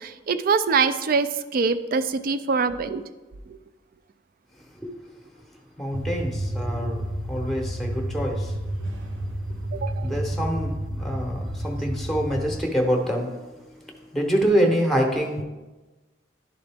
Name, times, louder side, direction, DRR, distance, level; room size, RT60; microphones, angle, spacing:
voice 1, 0.0-3.0 3.5-3.6 9.7-10.1, right 5 dB, 50° right, 11 dB, 0.4 m, -24 dB
voice 2, 5.8-8.5 10.0-15.4, equal, ahead, 1 dB, 0.8 m, -26 dB
sound 1, 5.9-12.6, right 1 dB, 75° right, 0.8 m, -30 dB
11.0 x 3.8 x 3.4 m, 1.2 s
head